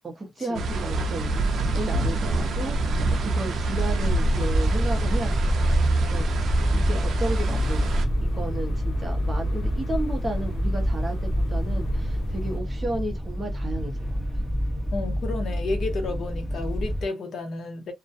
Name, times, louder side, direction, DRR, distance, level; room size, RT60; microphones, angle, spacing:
voice 1, 0.0-1.5 1.7-5.3 6.1-14.2, right 1 dB, 20° right, 0.6 m, -33 dB
sound 1, 0.5-8.0, right 2 dB, 60° right, 0.4 m, -25 dB
sound 2, 4.1-17.0, equal, 10° left, 0.9 m, -27 dB
sound 3, 7.3-12.6, left 1 dB, 90° left, 0.5 m, -36 dB
voice 2, 14.9-17.9, left 3 dB, 55° left, 0.7 m, -32 dB
2.4 x 2.1 x 2.5 m
wide cardioid pair, 180°, 0 cm